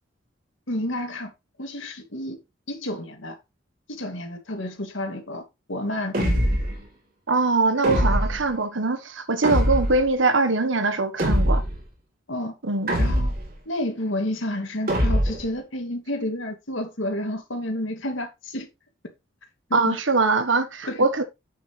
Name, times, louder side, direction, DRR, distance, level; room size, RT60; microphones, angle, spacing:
voice 1, 0.7-1.3 1.6-2.4 2.7-3.4 3.9-6.4 12.3-12.5 13.0-13.3 13.7-18.7 19.7-20.0 20.9-21.1, left 1 dB, 90° left, 2.6 m, -30 dB
sound 1, 6.1-6.8 7.8-8.5 9.4-10.1 11.2-11.8 12.9-13.6 14.9-15.5, equal, 50° right, 3.2 m, -22 dB
voice 2, 7.3-11.6 12.6-13.0 19.7-21.2, right 3 dB, 85° right, 1.3 m, -22 dB
8.5 x 7.5 x 3.3 m
head